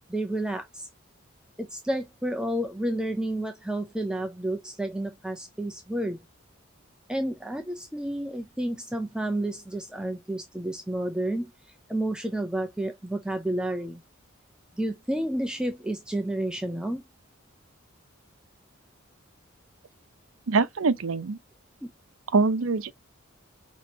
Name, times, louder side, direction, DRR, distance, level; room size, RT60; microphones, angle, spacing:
voice 1, 0.1-0.9 1.6-6.2 7.1-11.5 11.9-14.0 14.8-17.0 21.8-21.9, right 1 dB, 5° right, 0.5 m, -30 dB
voice 2, 20.5-21.4 22.3-22.9, right 4 dB, 85° right, 0.7 m, -24 dB
6.1 x 3.0 x 2.8 m
head